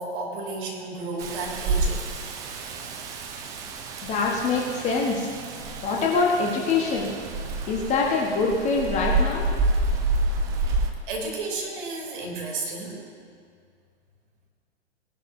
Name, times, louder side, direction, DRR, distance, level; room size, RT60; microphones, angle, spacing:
voice 1, 0.0-2.3 10.6-10.8 11.1-13.1, right 3 dB, 45° right, -1 dB, 2.9 m, -33 dB
Rain, 1.2-10.9, right 2 dB, 10° right, 0.4 m, -28 dB
voice 2, 4.0-5.3 5.8-7.1 7.7-9.4, left 4 dB, 20° left, -1 dB, 1.2 m, -24 dB
18.0 x 11.0 x 2.7 m, 2.1 s
figure-of-eight pair, 110°, 34 cm